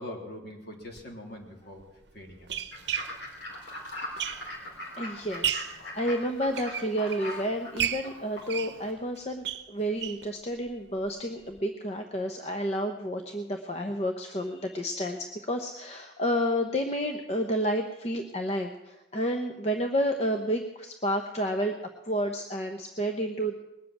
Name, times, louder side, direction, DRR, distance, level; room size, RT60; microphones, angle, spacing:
voice 1, 0.0-1.8 2.1-2.6, left 1 dB, 55° left, 0 dB, 3.4 m, -42 dB
sound 1, 0.9-1.0 1.8-4.8 5.2-5.8 6.3-7.3 7.8-10.3 10.7-10.8 11.0-11.1 11.5-11.6, right 10 dB, 60° right, 0.8 m, -34 dB
Fowl / Bird, 2.7-8.9, left 1 dB, 75° left, 3.9 m, -41 dB
voice 2, 5.0-21.7 22.0-23.5, equal, 35° left, 5 dB, 0.9 m, -30 dB
20.5 x 7.6 x 9.1 m, 0.98 s
head